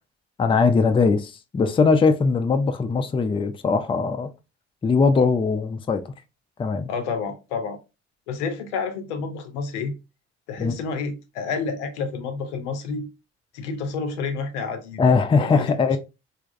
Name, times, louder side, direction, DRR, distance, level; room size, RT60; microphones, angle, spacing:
voice 1, 0.4-4.3 4.8-6.0 6.6-6.9 10.6-10.7 15.0-16.0, left 4 dB, 15° left, 0.4 m, -20 dB
voice 2, 6.9-7.8 8.3-9.9 10.5-13.1 13.5-15.0 15.4-15.8, left 4 dB, 90° left, 0.5 m, -29 dB
3.3 x 2.0 x 2.4 m
hypercardioid pair, 50°, 33 cm